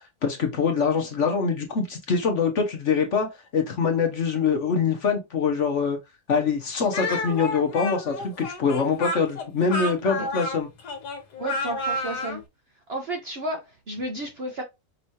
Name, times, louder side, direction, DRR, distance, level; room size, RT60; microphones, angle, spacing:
voice 1, 0.2-3.3 3.5-6.0 6.3-10.7, left 5 dB, 50° left, 1.1 m, -24 dB
Speech, 6.9-12.4, left 2 dB, 70° left, 1.5 m, -30 dB
voice 2, 11.4-12.4 12.9-14.6, right 1 dB, 50° right, 0.8 m, -32 dB
5.5 x 3.0 x 2.6 m
omnidirectional pair, 1.8 m